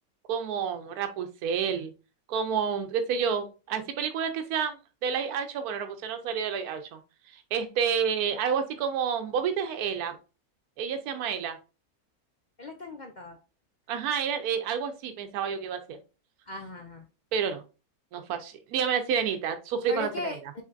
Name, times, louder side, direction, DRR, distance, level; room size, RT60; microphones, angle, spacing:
voice 1, 0.3-1.9 2.3-4.8 5.0-7.0 7.3-10.2 10.8-11.6 13.9-16.0 17.3-17.6 18.1-20.4, right 7 dB, 80° right, 7 dB, 1.2 m, -29 dB
voice 2, 12.6-13.4 16.5-17.0 19.9-20.6, left 2 dB, 60° left, 4 dB, 0.4 m, -38 dB
4.9 x 3.8 x 2.6 m, 0.31 s
omnidirectional pair, 1.6 m